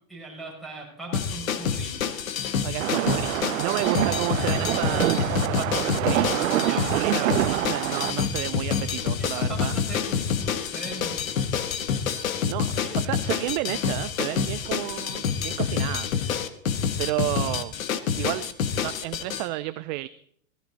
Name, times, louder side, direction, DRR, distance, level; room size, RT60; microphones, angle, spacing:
voice 1, 0.1-2.1 3.6-3.7 6.6-7.0 9.2-11.3 12.8-13.0, right 3 dB, ahead, -1 dB, 6.7 m, -40 dB
sound 1, 1.1-19.4, left 7 dB, 75° left, 1.6 m, -27 dB
voice 2, 2.6-6.3 6.7-9.7 12.4-16.1 17.0-17.7 18.1-18.5 18.8-20.1, right 18 dB, 35° right, 15 dB, 0.5 m, -31 dB
sound 2, 2.8-8.1, right 13 dB, 75° right, 0.7 m, -26 dB
17.0 x 14.0 x 4.1 m, 0.63 s
hypercardioid pair, 125°, 41 cm